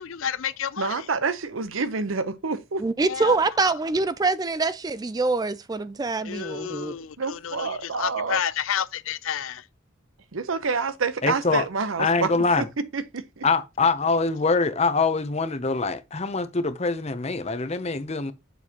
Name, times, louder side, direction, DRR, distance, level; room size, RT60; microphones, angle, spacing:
voice 1, 0.0-1.0 3.0-3.4 3.6-3.7 6.2-9.6, left 8 dB, 75° left, 0.5 m, -30 dB
voice 2, 0.8-2.8 6.5-6.6 7.2-8.4 10.3-12.3 12.6-12.7 12.9-13.4, right 4 dB, 75° right, 0.8 m, -28 dB
voice 3, 2.8-6.9, right 3 dB, 20° right, 0.3 m, -25 dB
voice 4, 11.2-11.6 12.0-12.7 13.4-18.3, left 4 dB, 30° left, 0.7 m, -24 dB
7.2 x 6.3 x 2.9 m
head